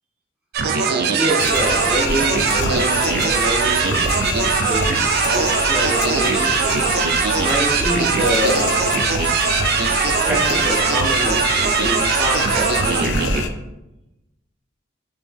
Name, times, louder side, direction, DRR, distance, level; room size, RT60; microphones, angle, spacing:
sound 1, 0.5-13.5, right 5 dB, 50° right, 0.3 m, -20 dB
voice 1, 0.8-4.1 4.6-4.8 5.2-8.6 10.2-11.5 11.8-13.2, right 1 dB, 5° right, -4 dB, 0.8 m, -26 dB
sound 2, 1.4-13.5, left 5 dB, 60° left, 0.3 m, -27 dB
3.4 x 2.8 x 3.5 m, 0.96 s
head